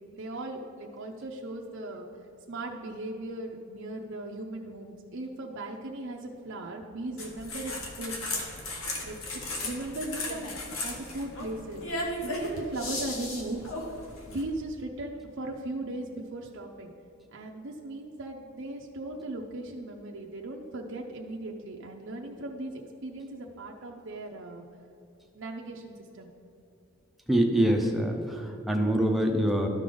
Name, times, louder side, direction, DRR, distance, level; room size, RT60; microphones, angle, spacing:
voice 1, 0.1-2.1 2.5-8.2 9.0-10.5 10.8-13.6 14.3-16.9 17.3-24.6 25.3-26.3, right 2 dB, 65° right, 0 dB, 0.6 m, -38 dB
sound 1, 7.2-14.4, left 2 dB, 80° left, 1.3 m, -36 dB
voice 2, 27.3-29.7, right 1 dB, ahead, 1 dB, 0.7 m, -25 dB
13.0 x 5.1 x 3.8 m, 2.7 s
head